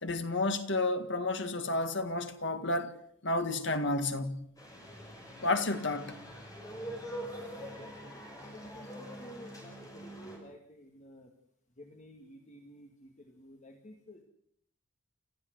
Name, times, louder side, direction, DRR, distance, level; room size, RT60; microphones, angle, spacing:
voice 1, 0.0-2.9 3.2-4.4 5.4-6.2, left 2 dB, 60° left, 1.8 m, -31 dB
sound 1, 4.6-10.4, equal, 15° left, 6.0 m, -44 dB
voice 2, 9.1-9.7 10.0-10.6 11.0-11.2 12.0-12.9 13.5-14.2, equal, 35° left, 2.0 m, -51 dB
29.0 x 14.0 x 7.9 m
head